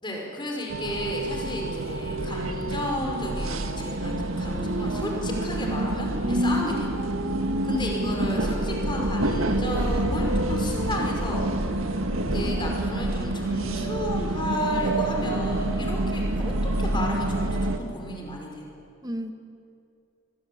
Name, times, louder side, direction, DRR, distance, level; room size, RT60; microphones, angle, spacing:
voice 1, 0.0-7.0 7.6-11.9 12.3-17.6 17.9-18.7, left 1 dB, 25° left, 0 dB, 5.1 m, -33 dB
sound 1, 0.7-17.8, right 1 dB, 90° right, 1.9 m, -27 dB
voice 2, 8.0-8.6 19.0-19.3, equal, 20° right, 6 dB, 1.6 m, -34 dB
24.0 x 22.5 x 8.7 m, 2.5 s
head